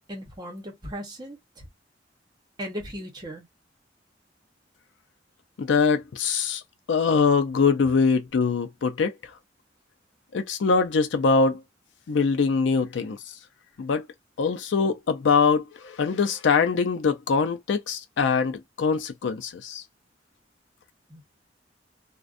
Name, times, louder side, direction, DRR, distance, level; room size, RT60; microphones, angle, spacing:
voice 1, 0.1-1.7 2.6-3.5 21.1-21.2, equal, 25° right, 0.9 m, -37 dB
voice 2, 5.6-6.6 6.9-9.1 10.3-11.6 12.1-13.2 13.8-14.1 14.4-19.8, left 5 dB, 80° left, 0.4 m, -23 dB
2.5 x 2.2 x 2.5 m
head